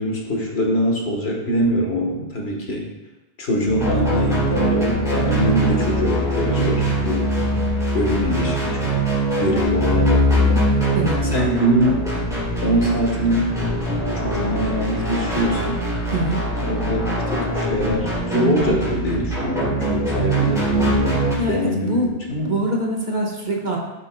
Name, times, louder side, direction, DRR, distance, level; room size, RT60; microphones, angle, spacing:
voice 1, 0.0-2.9 3.4-7.3 7.9-8.9 9.4-10.7 11.2-12.0 12.6-13.5 14.0-15.8 16.6-22.6, equal, 85° left, 0 dB, 1.8 m, -23 dB
sound 1, 3.7-21.4, right 1 dB, 5° right, 3.0 m, -22 dB
voice 2, 10.9-11.3 16.1-16.5 21.4-22.2 22.5-23.8, right 1 dB, 45° right, -2 dB, 1.7 m, -23 dB
12.0 x 7.6 x 2.4 m, 1.1 s
omnidirectional pair, 1.1 m